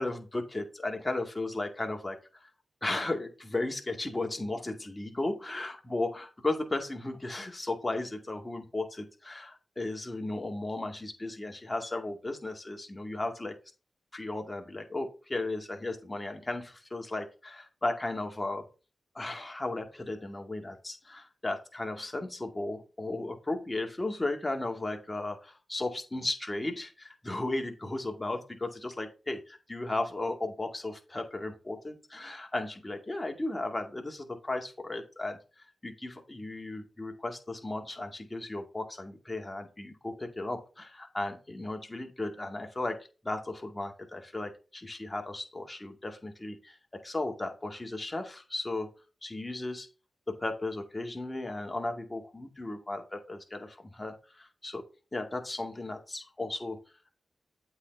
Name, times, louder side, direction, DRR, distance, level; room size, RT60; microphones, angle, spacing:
voice 1, 0.0-2.5 2.8-13.6 14.1-18.7 19.1-48.9 49.2-49.9 50.3-54.8 55.1-56.8, left 2 dB, 25° left, 4 dB, 2.2 m, -35 dB
8.1 x 4.1 x 4.5 m, 0.32 s
cardioid pair, 45°, 0 cm